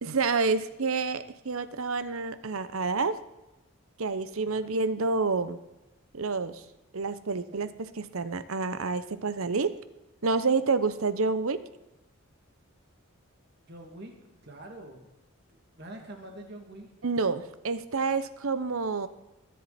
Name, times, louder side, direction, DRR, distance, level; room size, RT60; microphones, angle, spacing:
voice 1, 0.0-3.2 4.0-5.6 6.1-6.6 6.9-7.7 8.0-9.7 10.2-11.6 17.0-19.1, right 4 dB, 70° right, 13 dB, 0.8 m, -28 dB
voice 2, 13.7-15.1 15.5-16.9, right 1 dB, 45° right, 2 dB, 2.6 m, -46 dB
20.5 x 10.0 x 4.3 m, 0.97 s
head